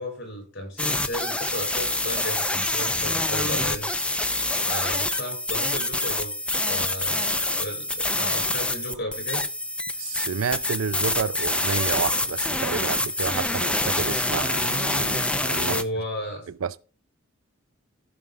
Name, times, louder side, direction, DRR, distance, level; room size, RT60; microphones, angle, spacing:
voice 1, 0.0-3.9 4.6-6.3 6.7-9.5 15.6-16.5, equal, 60° left, 6.0 m, -34 dB
sound 1, 0.8-15.8, left 2 dB, 5° left, 0.5 m, -26 dB
voice 2, 10.0-15.8 16.6-16.8, right 6 dB, 90° right, 0.5 m, -30 dB
14.5 x 5.3 x 3.6 m
head